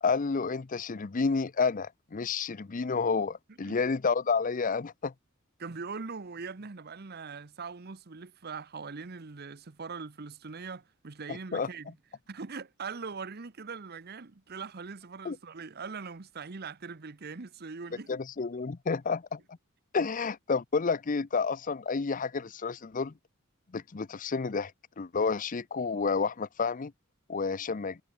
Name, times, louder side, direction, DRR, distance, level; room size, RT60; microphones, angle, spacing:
voice 1, 0.0-5.1 11.3-11.7 15.2-15.4 18.1-19.4 19.9-23.1 23.7-24.7 25.0-26.9 27.3-28.0, left 5 dB, 40° left, 0.5 m, -30 dB
voice 2, 5.6-12.0 12.3-18.2, right 4 dB, 45° right, 0.9 m, -41 dB
head